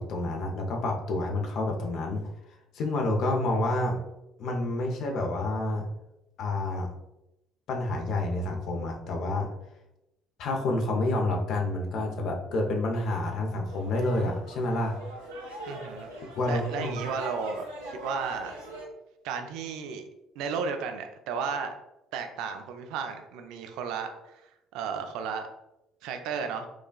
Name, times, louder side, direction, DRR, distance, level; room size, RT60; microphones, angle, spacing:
voice 1, 0.0-2.2 2.7-4.0 4.4-5.9 6.4-6.9 7.7-9.5 10.4-15.0 16.3-17.0, left 2 dB, 65° left, 2 dB, 0.6 m, -28 dB
sound 1, 13.6-18.8, right 1 dB, 85° right, 1.3 m, -41 dB
voice 2, 15.7-16.1 16.5-18.6 19.2-20.0 20.4-21.7 22.1-25.5 26.0-26.7, right 6 dB, 70° right, 6 dB, 0.4 m, -34 dB
4.7 x 2.3 x 2.2 m, 0.91 s
hypercardioid pair, 55°, 0 cm